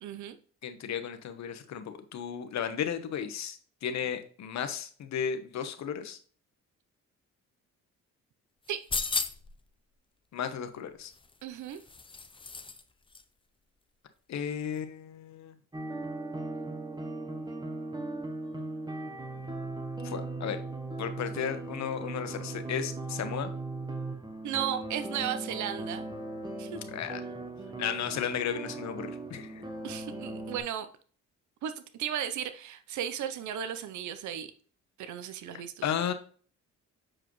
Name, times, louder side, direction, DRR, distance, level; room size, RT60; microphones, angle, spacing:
voice 1, 0.0-0.4 8.7-8.8 11.4-11.8 24.4-26.1 26.6-26.8 29.8-30.9 31.6-34.5 35.0-35.9, right 10 dB, 70° right, 10 dB, 0.7 m, -35 dB
voice 2, 0.6-6.2 10.3-11.1 14.3-15.5 20.0-20.6 21.0-23.5 26.9-27.2 27.8-29.7 35.8-36.1, left 8 dB, 65° left, 9 dB, 1.1 m, -34 dB
sound 1, 8.7-9.6 11.1-12.8 13.1-13.2, left 4 dB, 15° left, 0.6 m, -35 dB
sound 2, 15.7-30.6, right 2 dB, 15° right, 1.2 m, -38 dB
7.5 x 4.8 x 3.1 m, 0.43 s
cardioid pair, 90°, 30 cm